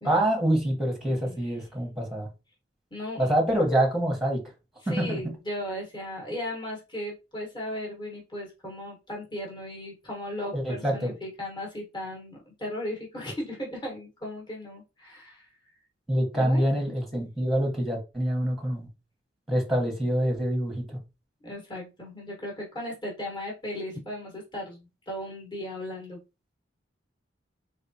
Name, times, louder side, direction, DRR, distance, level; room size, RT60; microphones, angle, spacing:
voice 1, 0.0-2.3 3.2-4.4 4.9-5.2 10.5-11.1 16.1-18.9 19.5-21.0, right 1 dB, ahead, 1.1 m, -26 dB
voice 2, 2.9-3.3 4.8-15.5 16.3-16.6 21.4-26.2, left 1 dB, 25° left, 1.3 m, -36 dB
3.7 x 3.3 x 2.8 m
head